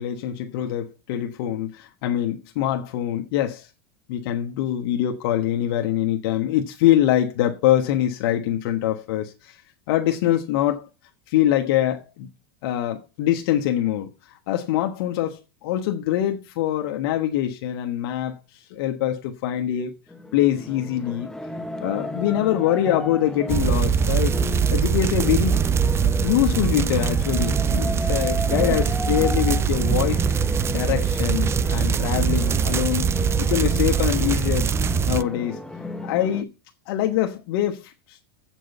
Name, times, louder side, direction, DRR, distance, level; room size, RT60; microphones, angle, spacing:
voice 1, 0.0-3.7 4.1-9.6 9.9-10.8 11.3-12.3 12.6-20.0 20.3-21.3 21.8-24.4 24.7-25.6 26.0-30.3 30.7-33.1 33.4-34.7 35.1-35.6 36.0-36.4 36.9-38.2, left 12 dB, 65° left, 1.2 m, -24 dB
sound 1, 20.1-36.4, left 2 dB, 5° left, 0.9 m, -33 dB
sound 2, 23.5-35.2, right 7 dB, 20° right, 0.4 m, -22 dB
8.2 x 6.1 x 6.6 m
supercardioid pair, 120°, 13 cm